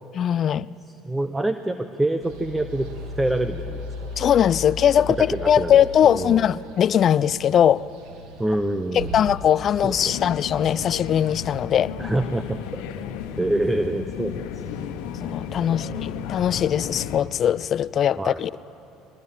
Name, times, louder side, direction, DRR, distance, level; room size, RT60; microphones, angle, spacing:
voice 1, 0.2-0.7 4.2-7.8 8.9-11.9 15.2-18.5, left 9 dB, 50° left, 20 dB, 0.4 m, -20 dB
voice 2, 1.0-2.9 3.2-3.8 5.2-6.5 8.4-9.3 9.8-10.4 12.0-12.8 13.4-14.6 15.6-16.1 18.2-18.4, right 1 dB, 10° right, 9 dB, 0.9 m, -26 dB
sound 1, 2.2-11.4, left 2 dB, 75° right, 2.7 m, -38 dB
sound 2, 10.0-17.2, left 8 dB, 75° left, 1.3 m, -34 dB
23.0 x 20.5 x 7.4 m, 2.8 s
hypercardioid pair, 80°, 0 cm